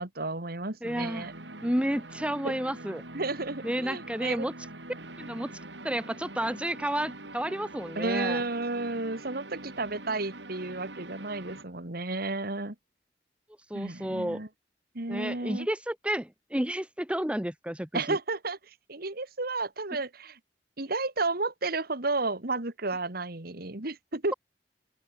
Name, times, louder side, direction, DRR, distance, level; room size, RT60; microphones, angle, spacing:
voice 1, 0.0-1.3 2.4-2.5 3.1-4.4 7.9-12.7 13.7-14.5 14.9-15.7 17.9-20.4 20.8-24.3, right 3 dB, 60° right, 2.6 m, -32 dB
voice 2, 0.8-1.3 1.6-3.0 3.6-4.5 5.2-5.6 5.8-8.4 13.7-14.4 15.1-18.2, right 1 dB, 5° right, 1.6 m, -31 dB
sound 1, 0.8-11.6, right 2 dB, 80° right, 7.2 m, -44 dB
open air
head